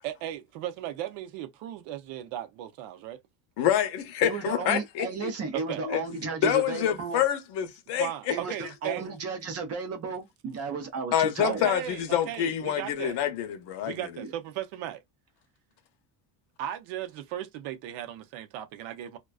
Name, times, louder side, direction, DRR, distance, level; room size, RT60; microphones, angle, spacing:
voice 1, 0.0-3.2 5.5-5.8 7.9-9.1 11.4-13.2 13.8-15.0 16.6-19.2, right 12 dB, 70° right, 0.7 m, -36 dB
voice 2, 3.6-5.3 5.8-6.0 6.4-8.1 11.1-14.0, left 10 dB, 60° left, 0.6 m, -27 dB
voice 3, 4.2-7.2 8.3-11.7 14.2-14.3, right 4 dB, 35° right, 0.4 m, -34 dB
2.4 x 2.2 x 2.3 m
cardioid pair, 165°, 47 cm